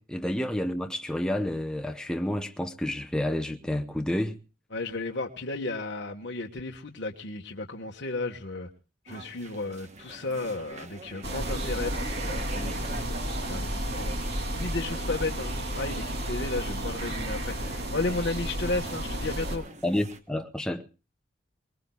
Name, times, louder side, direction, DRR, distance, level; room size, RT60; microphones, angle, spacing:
voice 1, 0.0-4.4 19.8-20.9, left 1 dB, 5° left, 0.7 m, -30 dB
voice 2, 4.7-8.7 9.0-12.8 13.1-13.2 13.5-14.1 14.5-19.7, left 3 dB, 55° left, 1.4 m, -33 dB
sound 1, 9.1-20.2, right 2 dB, 35° right, 1.3 m, -45 dB
sound 2, 11.2-19.6, right 1 dB, 55° right, 2.9 m, -32 dB
24.0 x 20.0 x 2.3 m
head